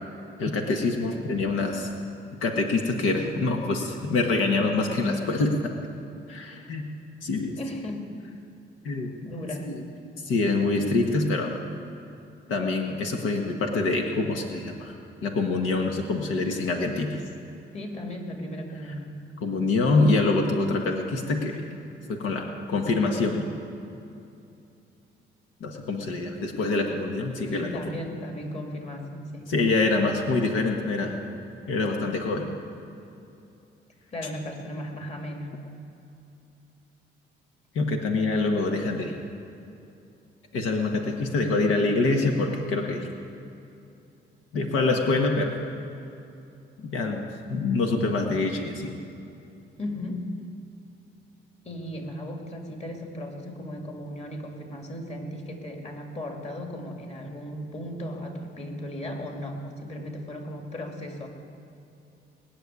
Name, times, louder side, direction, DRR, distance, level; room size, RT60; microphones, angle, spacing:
voice 1, 0.4-1.9 2.4-5.7 6.3-6.9 7.2-7.6 8.8-9.1 9.7-9.8 10.2-11.5 12.5-14.9 15.2-17.2 19.4-21.6 22.1-23.5 25.6-27.7 29.5-31.2 31.7-32.5 37.7-39.1 40.5-43.1 44.5-45.5 46.8-49.0, left 3 dB, 85° left, 2 dB, 1.5 m, -25 dB
voice 2, 7.6-8.1 9.2-9.7 17.7-19.2 27.4-29.5 34.1-35.5 49.8-50.2 51.6-61.3, left 1 dB, 35° left, 2 dB, 2.6 m, -36 dB
20.5 x 6.9 x 9.6 m, 2.8 s
cardioid pair, 90°, 20 cm